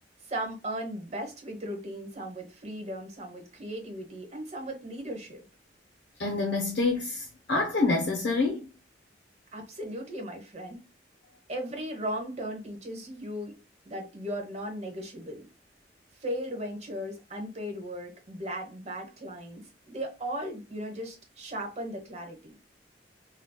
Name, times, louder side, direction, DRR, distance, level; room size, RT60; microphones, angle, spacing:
voice 1, 0.2-5.4 9.5-10.8 11.5-13.6 13.8-15.5 16.2-22.6, equal, 40° right, 1.0 m, -37 dB
voice 2, 6.2-8.7, left 3 dB, 65° left, 0.7 m, -27 dB
4.0 x 2.2 x 2.2 m
head